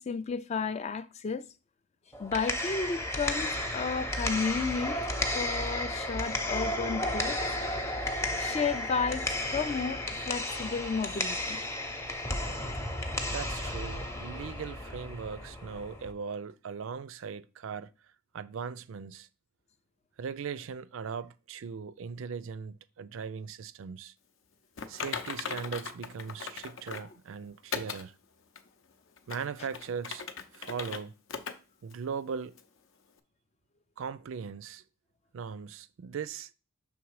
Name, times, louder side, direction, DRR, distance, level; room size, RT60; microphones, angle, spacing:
voice 1, 0.0-1.5 2.2-5.0 5.3-7.6 8.0-11.6 27.0-27.1, left 5 dB, 30° left, 0.3 m, -33 dB
sound 1, 2.1-16.1, left 1 dB, 15° left, 0.7 m, -33 dB
voice 2, 13.3-17.9 18.3-19.3 20.2-24.1 24.9-28.1 29.3-30.2 30.5-31.1 31.8-32.5 34.0-34.8 35.3-36.5, right 6 dB, 65° right, 0.4 m, -39 dB
Typing, 24.8-27.1 27.7-28.0 28.6-28.7 29.2-31.0 31.3-31.5 31.9-32.0 32.6-32.7, left 6 dB, 60° left, 0.6 m, -38 dB
6.1 x 3.6 x 4.7 m
head